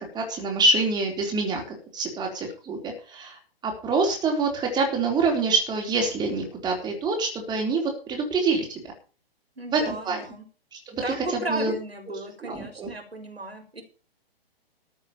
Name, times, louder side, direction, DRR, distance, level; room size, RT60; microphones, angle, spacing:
voice 1, 0.1-1.6 1.9-8.8 9.7-10.2 10.7-11.7 12.4-12.9, right 3 dB, 15° right, 2 dB, 4.0 m, -26 dB
voice 2, 9.6-10.4 11.0-13.8, right 2 dB, 80° right, 6 dB, 4.5 m, -35 dB
13.5 x 7.5 x 7.2 m, 0.37 s
figure-of-eight pair, 120°, 30 cm